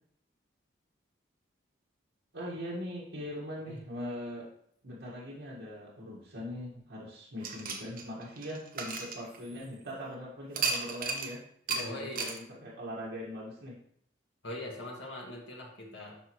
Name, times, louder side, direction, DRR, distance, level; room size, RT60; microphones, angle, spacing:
voice 1, 2.3-4.5 4.8-11.4 11.7-13.8, equal, 80° right, -6 dB, 1.8 m, -41 dB
sound 1, 7.4-9.8 10.5-11.3 11.7-11.8 12.2-12.4, right 4 dB, 45° right, 1.0 m, -34 dB
voice 2, 11.7-12.4 14.4-16.2, left 1 dB, 70° left, -2 dB, 2.2 m, -41 dB
12.0 x 4.4 x 3.2 m, 0.66 s
head